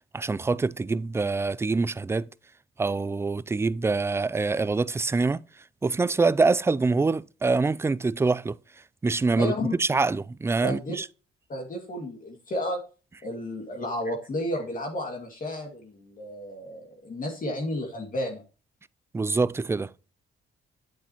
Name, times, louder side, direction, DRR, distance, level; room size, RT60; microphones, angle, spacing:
voice 1, 0.1-2.3 2.8-5.4 5.8-8.6 9.0-9.5 9.8-11.1 19.1-19.9, right 3 dB, 15° right, 0.3 m, -25 dB
voice 2, 9.4-9.7 10.6-10.9 11.5-12.8 13.2-18.4, left 1 dB, 40° left, 2.3 m, -32 dB
8.5 x 8.1 x 3.0 m
cardioid pair, 90°, 20 cm